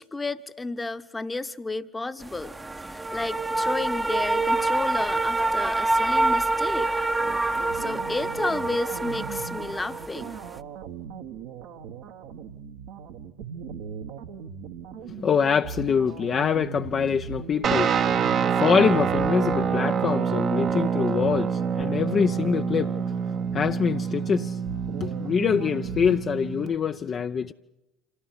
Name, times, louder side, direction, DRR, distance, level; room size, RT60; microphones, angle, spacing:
voice 1, 0.0-2.5 2.8-6.9 7.7-10.4, left 3 dB, 15° left, 1.1 m, -32 dB
sound 1, 2.2-10.6, right 2 dB, 15° right, 1.0 m, -26 dB
sound 2, 7.2-26.2, right 7 dB, 65° right, 1.6 m, -39 dB
voice 2, 15.0-18.1 18.5-23.0 23.5-24.6 25.0-27.5, left 7 dB, 40° left, 0.7 m, -25 dB
Guitar, 17.6-26.7, right 7 dB, 45° right, 1.1 m, -26 dB
26.5 x 16.5 x 8.4 m
hypercardioid pair, 70°, 0 cm